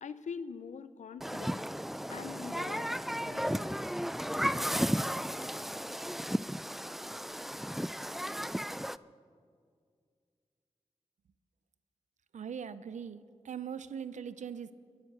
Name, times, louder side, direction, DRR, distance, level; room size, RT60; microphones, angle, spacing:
voice 1, 0.0-1.7 2.1-3.8, left 6 dB, 90° left, 14 dB, 0.6 m, -44 dB
Human group actions, 1.2-9.0, equal, ahead, 0.4 m, -34 dB
voice 2, 12.3-14.7, right 7 dB, 90° right, 14 dB, 0.6 m, -41 dB
24.0 x 8.1 x 6.7 m, 2.2 s
cardioid pair, 40°, 12 cm